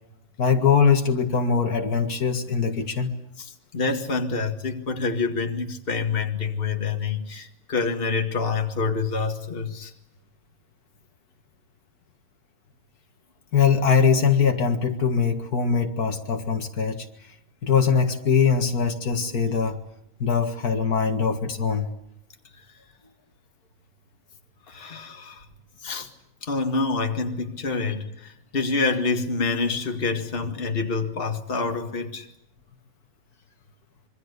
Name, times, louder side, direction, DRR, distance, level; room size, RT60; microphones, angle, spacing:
voice 1, 0.4-3.1 13.5-17.1 17.6-19.8 20.2-21.9, left 6 dB, 85° left, 5 dB, 2.4 m, -22 dB
voice 2, 3.4-9.9 24.7-25.5 25.8-26.1 26.4-32.3, left 4 dB, 40° left, 5 dB, 2.0 m, -27 dB
26.0 x 24.5 x 8.3 m, 0.81 s
omnidirectional pair, 1.6 m